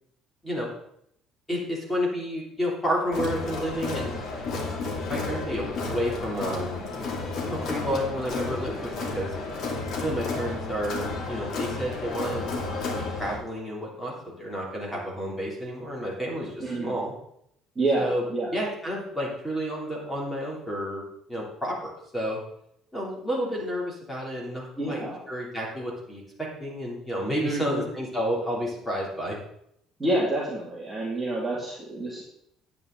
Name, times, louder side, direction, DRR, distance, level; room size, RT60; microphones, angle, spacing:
voice 1, 1.5-4.5 5.1-6.8 7.5-9.4 10.0-12.7 13.0-17.1 18.0-18.2 18.5-21.0 21.3-22.4 22.9-29.4, equal, 5° left, -3 dB, 3.1 m, -31 dB
Crowd, 3.1-13.4, left 3 dB, 50° left, 2.5 m, -32 dB
voice 2, 16.6-17.0 17.8-18.5 24.8-25.2 27.4-27.9 30.0-32.2, right 2 dB, 15° right, -5 dB, 2.3 m, -28 dB
10.5 x 9.0 x 3.9 m, 0.73 s
cardioid pair, 150°, 0 cm